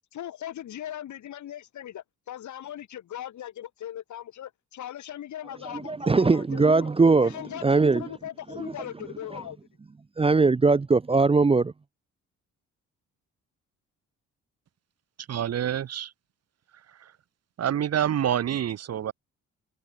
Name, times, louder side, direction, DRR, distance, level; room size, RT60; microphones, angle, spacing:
voice 1, 0.1-6.9 7.2-7.6 7.9-9.6, left 11 dB, 70° left, 6.4 m, -39 dB
voice 2, 5.6-8.1 8.6-8.7 9.3-9.4 10.2-11.7, right 3 dB, 20° right, 0.7 m, -21 dB
voice 3, 15.3-16.1 17.0-17.1 17.6-19.1, right 10 dB, 55° right, 1.4 m, -27 dB
cardioid pair, 90°, 30 cm